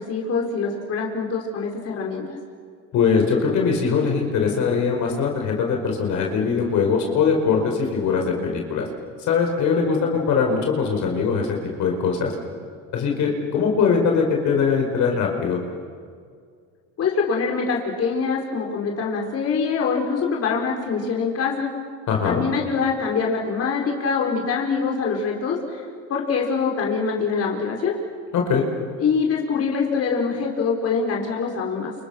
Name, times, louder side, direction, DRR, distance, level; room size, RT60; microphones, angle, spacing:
voice 1, 0.0-2.4 10.0-10.1 17.0-21.7 22.2-25.8 26.1-28.0 29.0-31.9, left 5 dB, 50° left, -1 dB, 4.6 m, -24 dB
voice 2, 2.9-8.9 9.3-12.3 12.9-15.6 22.1-22.4 28.3-28.7, left 5 dB, 65° left, 2 dB, 4.9 m, -21 dB
30.0 x 28.0 x 6.2 m, 2.1 s
cardioid pair, 100°, 32 cm